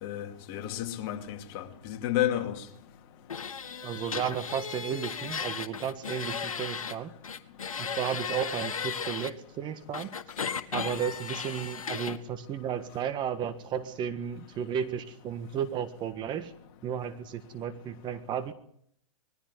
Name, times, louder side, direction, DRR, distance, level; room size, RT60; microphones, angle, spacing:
voice 1, 0.0-2.6, left 12 dB, 40° left, 2.4 m, -31 dB
sound 1, 3.3-7.0 7.2-9.3 9.9-12.2, left 6 dB, 75° left, 1.8 m, -35 dB
voice 2, 3.8-7.1 7.8-10.2 10.7-16.5 16.8-18.5, right 8 dB, 25° right, 1.6 m, -33 dB
21.0 x 15.0 x 9.7 m
hypercardioid pair, 120°, 18 cm